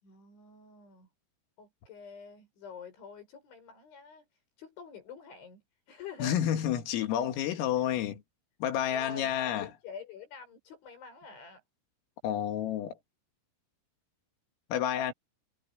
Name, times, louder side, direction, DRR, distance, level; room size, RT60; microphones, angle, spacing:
voice 1, 0.0-1.1 1.6-4.2 4.6-5.6 5.9-6.4 8.9-11.6, left 5 dB, 65° left, 10.0 m, -47 dB
voice 2, 6.2-8.2 8.6-9.7 12.2-12.9 14.7-15.1, left 10 dB, 80° left, 4.8 m, -30 dB
omnidirectional pair, 5.9 m